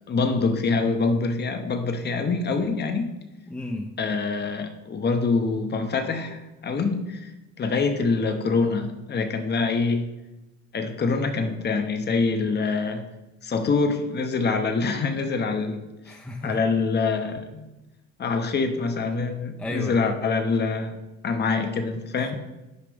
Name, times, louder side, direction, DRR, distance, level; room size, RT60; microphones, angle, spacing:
voice 1, 0.1-3.1 4.0-7.3 7.6-10.0 10.7-13.0 13.4-16.1 16.4-17.7 18.2-20.9 21.2-22.4, left 4 dB, 30° left, 6 dB, 0.8 m, -25 dB
voice 2, 3.5-3.9 16.1-16.6 19.6-20.0 22.2-22.4, left 1 dB, 5° left, 2 dB, 0.6 m, -33 dB
6.8 x 4.9 x 3.5 m, 1.0 s
supercardioid pair, 70°, 32 cm